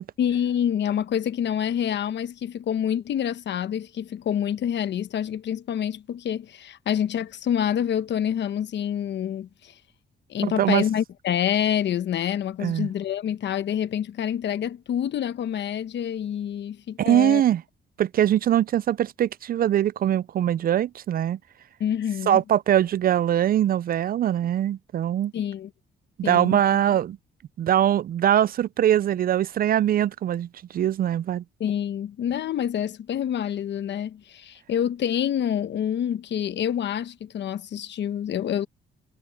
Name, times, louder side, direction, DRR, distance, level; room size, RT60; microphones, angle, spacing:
voice 1, 0.2-9.7 10.3-17.4 21.8-22.4 25.3-25.7 26.2-26.6 31.6-38.7, left 9 dB, 65° left, 1.1 m, -27 dB
voice 2, 10.4-10.8 12.6-12.9 17.0-17.6 18.0-21.4 22.3-25.3 26.2-27.2 27.6-31.4, right 11 dB, 50° right, 0.4 m, -22 dB
cardioid pair, 90°, 20 cm